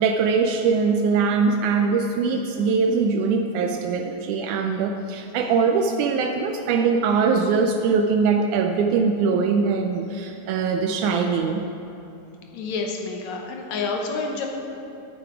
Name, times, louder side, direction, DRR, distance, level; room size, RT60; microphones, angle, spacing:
voice 1, 0.0-11.6, right 5 dB, 80° right, 4 dB, 2.0 m, -22 dB
voice 2, 12.5-14.5, left 4 dB, 70° left, 2 dB, 2.0 m, -28 dB
10.5 x 9.1 x 4.9 m, 2.8 s
omnidirectional pair, 3.5 m